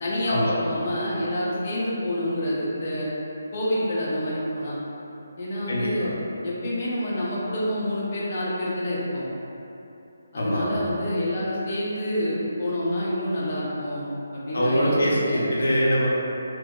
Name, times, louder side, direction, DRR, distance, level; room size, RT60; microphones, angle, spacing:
voice 1, 0.0-3.1 3.5-4.7 5.4-6.1 6.4-9.3 10.3-15.4, left 1 dB, 40° left, -8 dB, 0.7 m, -28 dB
voice 2, 5.7-6.1 10.4-10.7 14.5-16.1, equal, 75° left, -6 dB, 0.8 m, -23 dB
3.1 x 2.5 x 3.8 m, 2.9 s
figure-of-eight pair, 155°, 0 cm